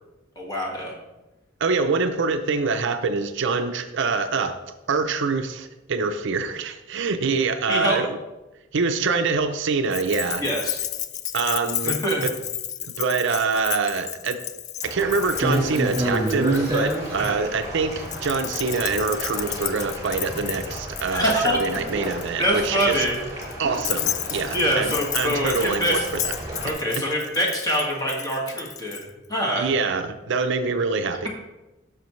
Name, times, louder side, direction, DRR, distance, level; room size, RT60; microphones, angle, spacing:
voice 1, 0.4-0.9 7.7-8.0 10.4-10.8 11.8-12.3 17.2-17.4 21.1-21.6 22.4-23.3 24.5-26.0 26.6-29.0 29.3-29.7, equal, 20° left, -2 dB, 1.8 m, -24 dB
voice 2, 1.6-4.6 4.9-8.2 8.7-10.4 11.3-11.9 12.2-12.3 12.9-14.4 14.8-23.0 23.6-26.0 26.2-26.3 27.0-27.1 29.6-31.3, right 4 dB, 65° right, 8 dB, 0.5 m, -25 dB
Keys jangling, 9.9-17.3 18.1-29.0, left 11 dB, 35° left, 0.3 m, -32 dB
sound 1, 14.8-26.7, right 1 dB, 20° right, 2.6 m, -31 dB
9.3 x 6.2 x 3.1 m, 1.0 s
head